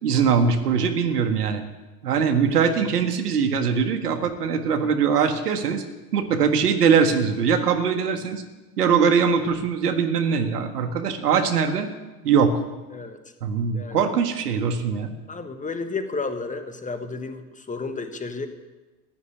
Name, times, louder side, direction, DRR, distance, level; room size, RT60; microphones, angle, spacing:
voice 1, 0.0-1.6 2.0-5.8 6.1-8.4 8.8-11.9 12.2-12.6 13.4-15.1, right 6 dB, 75° right, 6 dB, 1.8 m, -21 dB
voice 2, 15.3-18.5, left 3 dB, 15° left, 8 dB, 1.5 m, -32 dB
15.0 x 9.7 x 9.3 m, 1.2 s
figure-of-eight pair, 75°, 47 cm